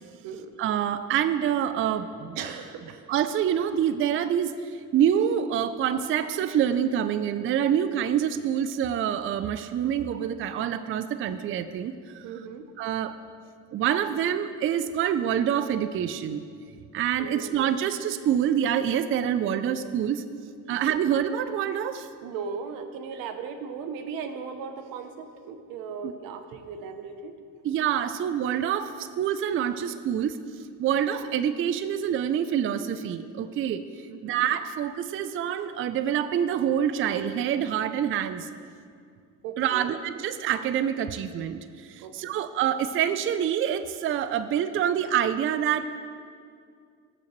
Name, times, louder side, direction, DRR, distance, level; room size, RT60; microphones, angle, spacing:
voice 1, 0.6-2.4 3.1-12.2 12.8-13.1 13.7-16.4 16.9-20.2 20.7-22.1 26.0-26.1 27.6-30.4 30.8-33.8 34.2-38.5 39.6-45.9, right 9 dB, 40° right, 11 dB, 0.4 m, -26 dB
voice 2, 2.3-3.0 12.2-12.7 17.2-17.5 20.7-21.0 22.2-27.4 34.1-34.4 39.4-40.0 42.0-42.4, right 6 dB, 80° right, 8 dB, 0.8 m, -37 dB
15.5 x 5.9 x 3.1 m, 2.3 s
supercardioid pair, 85°, 33 cm